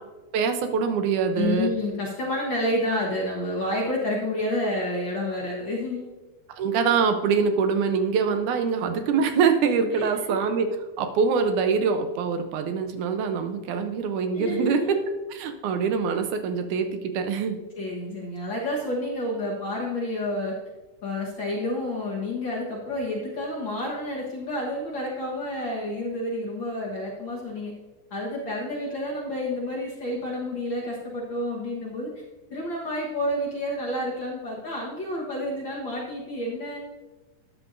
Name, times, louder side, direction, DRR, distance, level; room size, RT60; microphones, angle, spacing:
voice 1, 0.3-1.7 6.5-10.7 11.0-17.6, right 5 dB, 80° right, 7 dB, 2.2 m, -24 dB
voice 2, 1.4-6.1 9.9-10.4 14.3-14.9 17.8-20.6 21.0-27.7 28.1-32.2 32.5-36.8, left 1 dB, 50° left, -3 dB, 1.5 m, -29 dB
13.0 x 9.8 x 2.6 m, 1.2 s
omnidirectional pair, 3.7 m